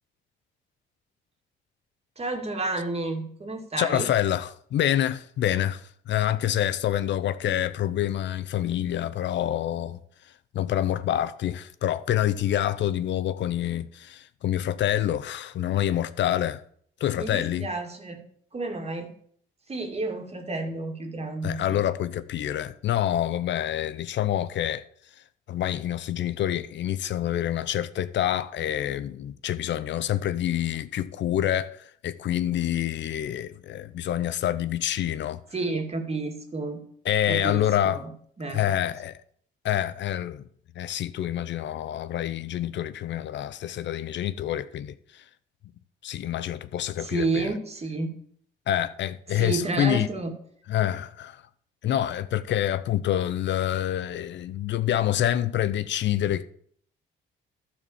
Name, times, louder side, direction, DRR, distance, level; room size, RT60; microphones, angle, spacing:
voice 1, 2.2-4.1 17.1-18.2 18.5-19.1 19.7-21.8 35.5-36.8 37.3-38.1 38.4-38.6 47.0-48.1 49.3-50.3, right 3 dB, 30° right, 2.2 m, -31 dB
voice 2, 3.8-10.0 10.5-16.6 17.0-17.7 21.4-24.8 25.5-35.4 37.0-38.0 38.5-39.2 39.6-40.4 40.8-45.2 46.0-47.5 48.7-50.1 50.7-51.4 51.8-56.4, left 11 dB, 65° left, 0.6 m, -27 dB
12.0 x 4.3 x 7.1 m
cardioid pair, 90°, 20 cm